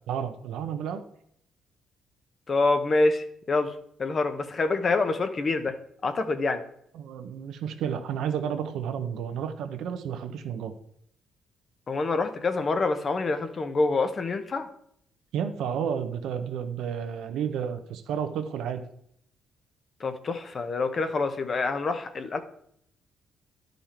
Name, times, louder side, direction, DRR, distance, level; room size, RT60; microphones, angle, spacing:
voice 1, 0.1-1.0 6.9-10.7 15.3-18.8, right 8 dB, 80° right, 8 dB, 0.9 m, -31 dB
voice 2, 2.5-5.7 6.0-6.6 11.9-14.7 20.0-22.4, left 3 dB, 40° left, 8 dB, 1.0 m, -26 dB
11.0 x 5.4 x 4.4 m, 0.71 s
cardioid pair, 90°, 0 cm